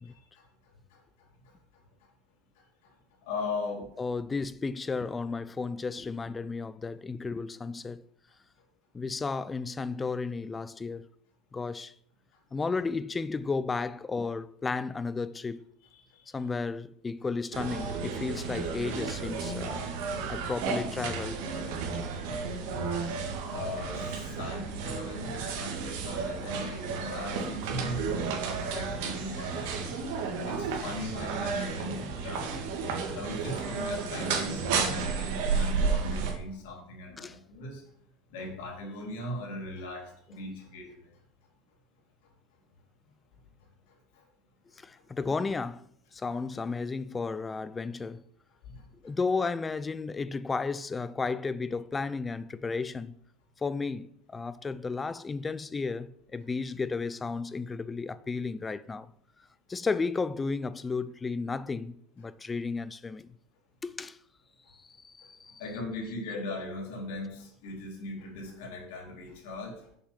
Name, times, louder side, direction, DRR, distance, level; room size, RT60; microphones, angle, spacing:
voice 1, 3.3-3.9 23.5-30.0 30.4-32.7 33.1-37.8 38.3-40.9 48.7-48.8 65.6-69.8, left 2 dB, 80° left, 3.6 m, -38 dB
voice 2, 4.0-8.0 8.9-11.1 11.5-11.9 12.5-15.6 16.3-19.9 20.3-21.4 29.8-30.1 37.2-37.4 44.8-45.9 46.1-48.2 49.0-53.1 53.6-59.1 59.7-63.4 63.8-64.2 64.7-65.6, left 4 dB, 15° left, 0.5 m, -33 dB
sound 1, 17.5-36.3, right 5 dB, 80° right, 2.0 m, -32 dB
6.8 x 6.2 x 7.4 m
supercardioid pair, 130°, 0 cm